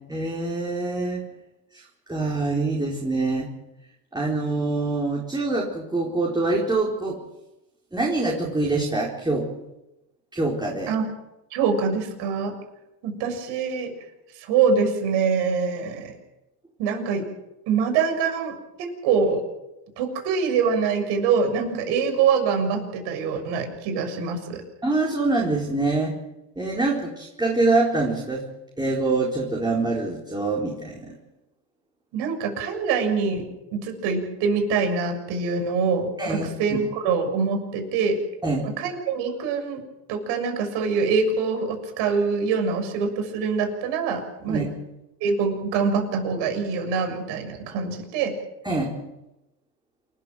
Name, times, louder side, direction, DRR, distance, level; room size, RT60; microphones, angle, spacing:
voice 1, 0.1-1.2 1.7-3.5 4.1-7.2 7.9-9.5 10.3-10.9 24.8-26.2 26.6-28.4 28.8-31.1 36.2-36.8 38.4-38.7 44.5-44.7 48.6-49.0, right 2 dB, 10° right, -2 dB, 4.5 m, -25 dB
voice 2, 11.5-12.5 13.0-13.9 14.4-16.1 16.8-17.3 17.7-19.4 20.0-24.6 32.1-38.2 38.6-39.8 40.1-44.7 45.2-48.4, right 5 dB, 60° right, 6 dB, 6.8 m, -24 dB
28.0 x 13.5 x 7.7 m, 0.95 s
hypercardioid pair, 95°, 49 cm